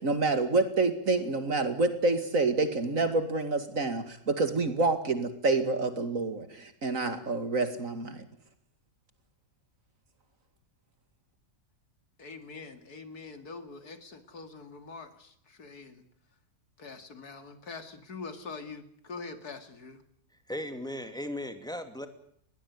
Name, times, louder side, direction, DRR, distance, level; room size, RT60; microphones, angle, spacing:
voice 1, 0.0-8.2, right 3 dB, 60° right, 9 dB, 2.7 m, -28 dB
voice 2, 12.2-16.0 16.8-20.0, left 4 dB, 90° left, 9 dB, 3.0 m, -44 dB
voice 3, 20.5-22.1, left 1 dB, 5° left, 8 dB, 2.6 m, -36 dB
21.0 x 18.5 x 9.6 m, 0.68 s
omnidirectional pair, 1.6 m